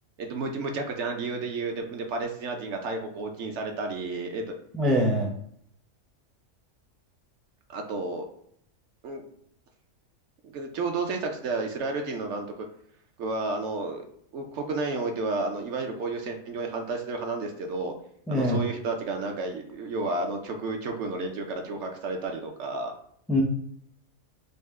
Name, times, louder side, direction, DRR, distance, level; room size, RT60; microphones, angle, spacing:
voice 1, 0.2-4.5 7.7-8.2 9.0-9.2 10.4-12.7 13.2-14.0 14.3-17.9 18.3-22.9, right 3 dB, 65° right, 3 dB, 0.9 m, -31 dB
voice 2, 4.7-5.3 18.3-18.6 23.3-23.4, equal, ahead, 0 dB, 0.4 m, -23 dB
5.4 x 2.1 x 3.5 m, 0.68 s
omnidirectional pair, 1.4 m